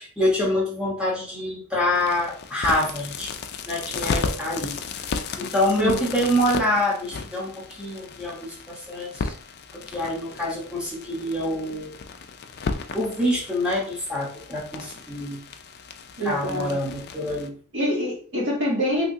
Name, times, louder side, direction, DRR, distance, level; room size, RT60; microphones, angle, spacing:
voice 1, 0.0-3.3 3.7-5.1 5.4-9.3 9.7-12.0 12.9-15.4 16.2-17.5, left 1 dB, 5° right, -5 dB, 1.0 m, -26 dB
sound 1, 1.9-17.5, left 4 dB, 45° left, 0.4 m, -35 dB
voice 2, 16.2-16.8 17.7-19.1, equal, 55° right, -3 dB, 1.3 m, -25 dB
3.5 x 2.9 x 2.7 m, 0.43 s
head